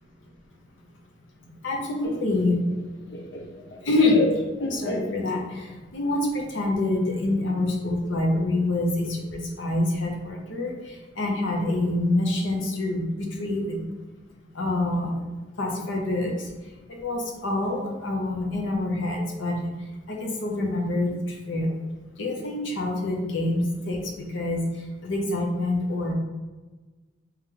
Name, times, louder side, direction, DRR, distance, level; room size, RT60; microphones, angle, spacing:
voice 1, 1.6-2.6 3.9-4.2 4.7-10.7 11.2-13.8 14.5-15.2 15.6-16.3 17.0-19.7 20.1-21.7 22.2-24.6 25.0-26.1, left 2 dB, 85° left, 0 dB, 0.8 m, -26 dB
Laughter, 2.0-5.7, left 1 dB, 60° left, 0.5 m, -30 dB
3.3 x 3.1 x 3.7 m, 1.2 s
head